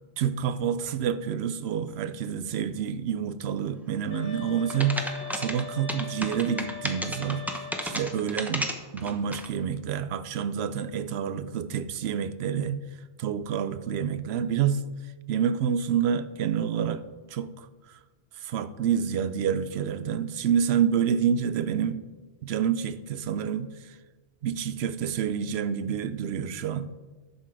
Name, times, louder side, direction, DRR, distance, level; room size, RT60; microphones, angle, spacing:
voice 1, 0.2-12.8 13.2-14.8 15.3-17.0 17.3-17.7 18.4-22.0 22.4-24.0 24.4-26.9, right 8 dB, 70° right, 13 dB, 0.8 m, -28 dB
sound 1, 4.1-8.2, left 3 dB, 45° left, 1.4 m, -41 dB
sound 2, 4.7-9.5, equal, ahead, 0.7 m, -32 dB
11.0 x 6.5 x 4.8 m, 1.3 s
omnidirectional pair, 1.1 m